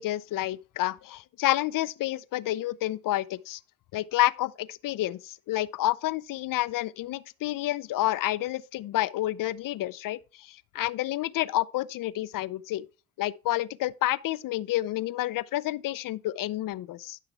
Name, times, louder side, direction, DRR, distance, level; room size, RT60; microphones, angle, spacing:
voice 1, 0.0-3.6 3.9-12.8 13.2-17.2, left 15 dB, 60° left, 0.6 m, -29 dB
11.5 x 5.7 x 3.4 m
hypercardioid pair, 45°, 38 cm